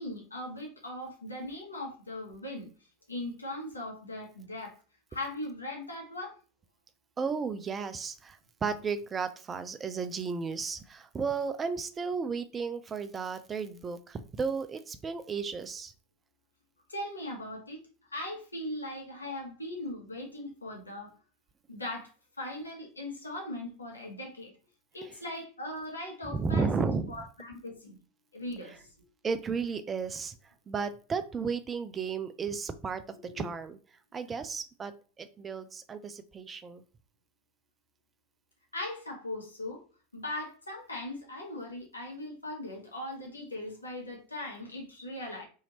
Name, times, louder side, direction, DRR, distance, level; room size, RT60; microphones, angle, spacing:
voice 1, 0.0-2.7 3.1-4.8 5.1-6.3 16.9-17.8 18.1-21.1 21.7-22.1 22.4-24.5 24.9-28.0 28.3-28.9 33.2-33.5 38.7-39.8 40.1-45.4, left 1 dB, 85° left, 0 dB, 1.0 m, -39 dB
voice 2, 7.2-15.9 26.2-27.1 29.2-30.3 30.7-33.8 34.1-36.8, right 5 dB, 25° right, 10 dB, 0.3 m, -34 dB
2.8 x 2.7 x 2.8 m, 0.38 s
figure-of-eight pair, 85°, 0 cm